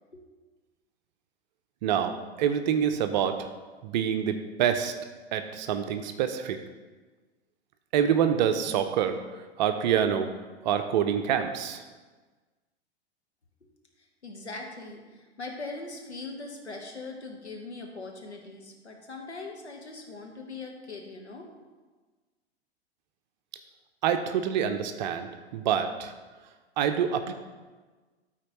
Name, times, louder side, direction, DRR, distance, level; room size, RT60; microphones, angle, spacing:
voice 1, 1.8-3.5 3.8-4.9 5.3-6.6 7.9-9.2 9.6-10.3 10.6-11.8 24.0-26.1 26.8-27.3, right 8 dB, 45° right, 8 dB, 0.7 m, -26 dB
voice 2, 14.0-21.5, left 3 dB, 80° left, 1 dB, 1.3 m, -41 dB
13.0 x 4.3 x 3.1 m, 1.3 s
figure-of-eight pair, 95°, 33 cm